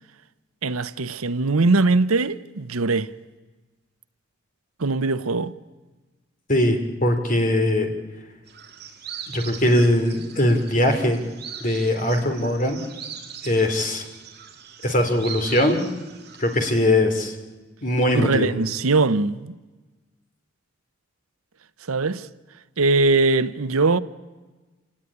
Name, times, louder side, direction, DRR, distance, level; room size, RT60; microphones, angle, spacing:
voice 1, 0.6-3.1 4.8-5.6 18.1-19.5 21.9-22.3 22.8-24.0, right 3 dB, 85° right, 0.8 m, -21 dB
voice 2, 6.5-7.9 9.3-11.2 11.6-12.8 13.4-14.0 14.8-15.8 16.4-17.3 17.8-18.5, left 1 dB, 40° left, 3.1 m, -21 dB
sound 1, 8.5-16.8, right 7 dB, 50° right, 2.8 m, -40 dB
27.5 x 17.5 x 9.9 m
head